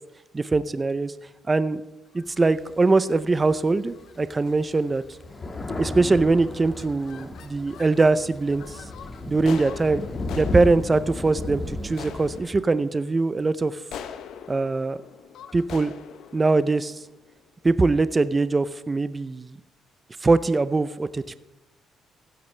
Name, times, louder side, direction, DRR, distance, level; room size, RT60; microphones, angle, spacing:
voice 1, 0.3-1.1 1.5-1.8 2.1-5.0 5.8-8.8 9.3-10.0 10.3-13.8 14.5-15.0 15.5-15.9 16.3-17.0 17.6-19.6 20.2-21.3, right 3 dB, 25° right, 14 dB, 0.5 m, -22 dB
sound 1, 2.1-2.4 3.0-3.2 3.9-4.1 4.4-4.5 4.9-5.3 5.8-6.2 6.4-8.1 8.5-17.7, left 8 dB, 80° left, 0.8 m, -44 dB
Thunder, 2.4-3.7 4.2-4.3 4.6-12.4, left 2 dB, 35° left, 1.9 m, -35 dB
15.5 x 11.5 x 3.3 m, 1.0 s
cardioid pair, 90°, 0 cm